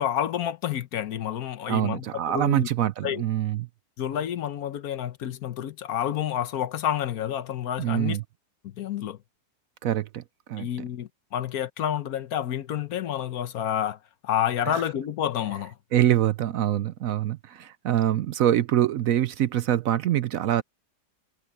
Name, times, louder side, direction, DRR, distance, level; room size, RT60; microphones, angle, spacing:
voice 1, 0.0-2.7 3.0-3.2 4.0-8.2 8.6-9.2 10.6-15.8, left 10 dB, 70° left, 1.3 m, -29 dB
voice 2, 1.7-3.7 7.8-8.2 9.8-10.2 10.5-10.7 15.9-20.6, right 11 dB, 65° right, 0.9 m, -24 dB
omnidirectional pair, 1.7 m